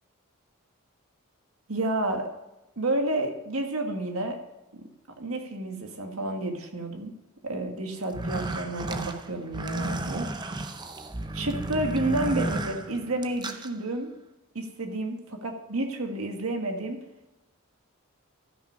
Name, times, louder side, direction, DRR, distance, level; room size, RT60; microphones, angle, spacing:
voice 1, 1.7-2.3 2.8-4.4 4.7-4.8 5.2-7.1 7.4-10.3 11.3-14.1 14.5-17.0, right 2 dB, 80° right, 3 dB, 1.6 m, -30 dB
sound 1, 8.0-13.7, right 2 dB, 20° right, 0.5 m, -33 dB
13.0 x 5.7 x 5.5 m, 0.98 s
head